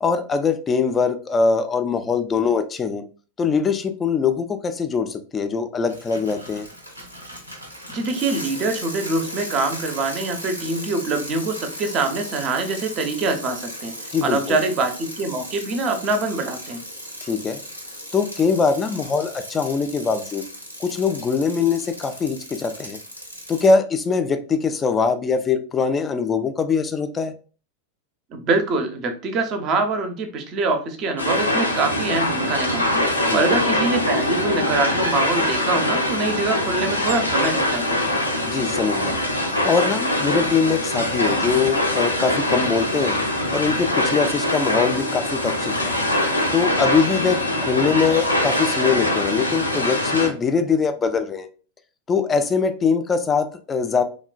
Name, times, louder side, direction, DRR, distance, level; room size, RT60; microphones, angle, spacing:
voice 1, 0.0-3.0 3.4-6.7 14.1-14.6 17.3-17.6 18.1-20.4 20.8-23.0 23.5-27.3 33.3-33.4 38.4-39.1 39.6-43.1 43.5-45.9 46.5-51.5 52.1-54.0, left 5 dB, 20° left, 8 dB, 0.3 m, -22 dB
Bicycle, 5.9-23.7, equal, 90° right, 0.6 m, -37 dB
voice 2, 7.9-13.9 14.2-16.8 28.3-38.0, right 3 dB, 35° right, 6 dB, 0.5 m, -24 dB
sound 1, 31.2-50.3, left 1 dB, 85° left, 0.5 m, -23 dB
3.0 x 2.1 x 2.3 m, 0.38 s
figure-of-eight pair, 90°, 0 cm